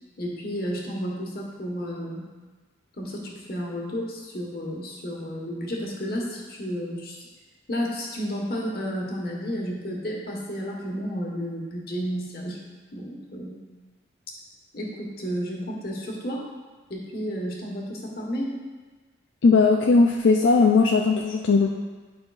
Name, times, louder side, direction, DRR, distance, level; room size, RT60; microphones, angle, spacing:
voice 1, 0.2-2.3 3.0-7.2 7.7-12.6 12.9-13.6 14.7-16.4 16.9-18.6, equal, 50° left, -2 dB, 1.3 m, -32 dB
voice 2, 19.4-21.7, left 4 dB, 80° left, 1 dB, 0.4 m, -18 dB
10.5 x 5.5 x 2.4 m, 1.3 s
head